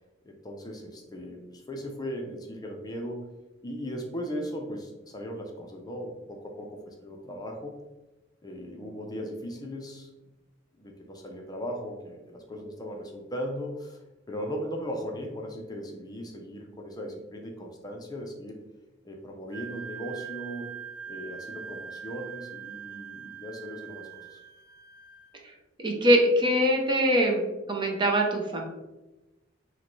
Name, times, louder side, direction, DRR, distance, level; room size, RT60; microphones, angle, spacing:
voice 1, 0.2-3.3 3.6-7.7 8.4-10.1 10.8-14.0 14.3-18.6 19.0-20.8 21.1-24.4, equal, 20° left, 1 dB, 0.5 m, -38 dB
Wind instrument woodwind instrument, 19.5-25.3, right 8 dB, 70° right, 1.0 m, -42 dB
voice 2, 25.8-27.4 27.7-28.6, equal, 25° right, 1 dB, 0.6 m, -23 dB
6.4 x 2.2 x 3.1 m, 1.1 s
head